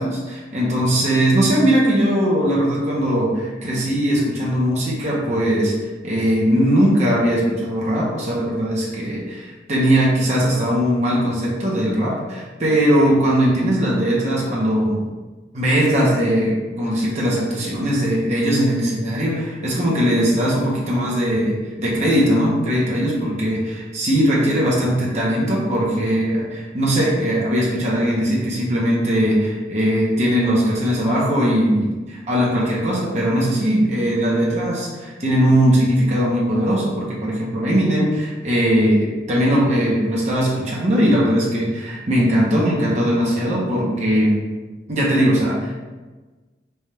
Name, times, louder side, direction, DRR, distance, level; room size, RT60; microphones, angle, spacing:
voice 1, 0.0-5.7 6.0-15.0 15.5-44.4 44.9-45.7, equal, 35° right, -5 dB, 0.8 m, -19 dB
3.4 x 2.4 x 4.2 m, 1.3 s
head